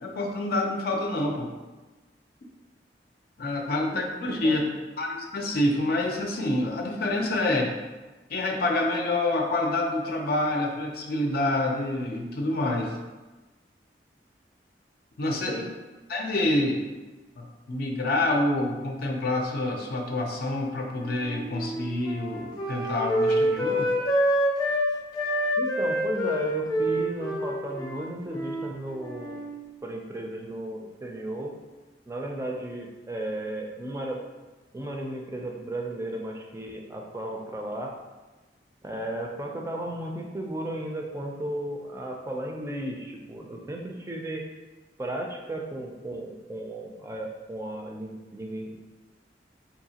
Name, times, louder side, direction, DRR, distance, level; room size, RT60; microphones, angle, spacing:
voice 1, 0.0-1.5 3.4-4.6 5.0-7.7 8.3-12.9 15.2-15.6 16.1-16.9 17.4-23.9, left 2 dB, 60° left, 1 dB, 0.5 m, -27 dB
voice 2, 4.4-4.8 15.5-15.7 25.6-29.4 29.8-31.5 32.1-34.2 34.7-37.9 38.8-44.5 45.0-48.8, right 1 dB, 15° right, 0 dB, 0.4 m, -34 dB
Wind instrument woodwind instrument, 21.0-24.8 25.1-28.7 29.0-29.5, equal, 25° left, 0.7 m, -27 dB
4.7 x 2.7 x 2.8 m, 1.2 s
head